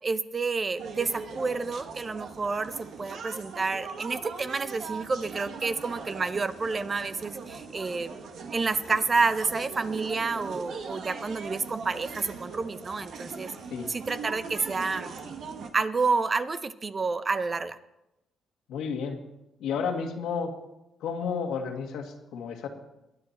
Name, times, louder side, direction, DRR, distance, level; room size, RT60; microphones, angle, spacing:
voice 1, 0.0-8.2 8.5-13.5 13.9-15.1 15.5-17.8, right 4 dB, 35° right, 13 dB, 0.7 m, -29 dB
sound 1, 0.8-15.7, right 5 dB, 70° right, 1.7 m, -41 dB
voice 2, 18.7-19.2 19.6-20.5 21.0-22.7, left 6 dB, 85° left, 3 dB, 1.9 m, -31 dB
21.0 x 9.8 x 4.3 m, 0.93 s
cardioid pair, 90°, 0 cm